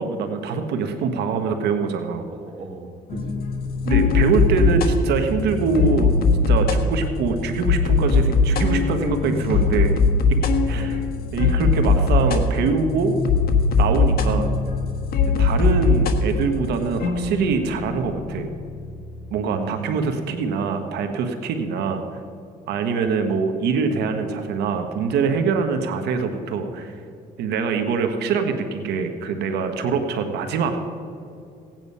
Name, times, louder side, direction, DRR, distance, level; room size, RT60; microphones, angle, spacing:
voice 1, 0.0-2.3 3.8-6.1 6.5-10.0 10.7-11.0 11.3-13.2 13.8-14.5 15.4-18.5 19.3-22.0 22.7-27.0 27.4-30.8, right 5 dB, 75° right, 6 dB, 1.2 m, -24 dB
voice 2, 2.3-3.4 9.2-9.4 10.7-10.9 15.3-15.5 19.5-20.1, right 3 dB, 35° right, 4 dB, 1.4 m, -36 dB
sound 1, 3.1-19.4, left 4 dB, 65° left, 1.4 m, -21 dB
17.0 x 9.1 x 5.5 m, 2.5 s
cardioid pair, 110°, 17 cm